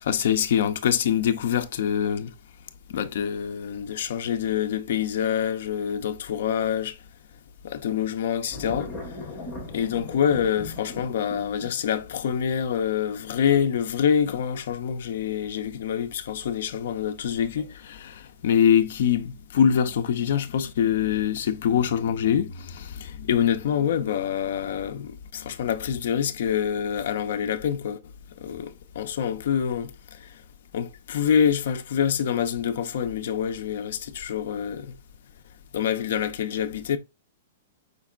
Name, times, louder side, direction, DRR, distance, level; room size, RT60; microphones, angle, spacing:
voice 1, 0.0-2.3 2.9-7.0 7.6-8.9 9.7-28.0 28.4-30.3 30.7-35.0 35.7-37.0, left 8 dB, 50° left, 0.7 m, -25 dB
sound 1, 8.5-18.1 18.5-19.1, left 2 dB, 10° left, 1.7 m, -41 dB
5.2 x 4.2 x 2.3 m
hypercardioid pair, 175°, 0 cm